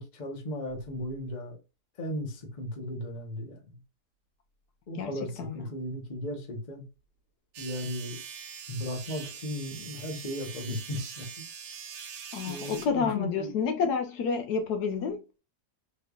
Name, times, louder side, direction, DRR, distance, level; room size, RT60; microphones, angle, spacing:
voice 1, 0.0-1.6 2.0-3.8 4.9-6.8 7.6-8.2 8.7-11.4 12.5-13.5, left 1 dB, 35° left, 0.8 m, -36 dB
sound 1, 7.5-12.9, right 7 dB, 85° right, 1.4 m, -43 dB
voice 2, 12.3-15.2, left 5 dB, 75° left, 1.2 m, -29 dB
3.5 x 3.2 x 2.2 m
omnidirectional pair, 1.8 m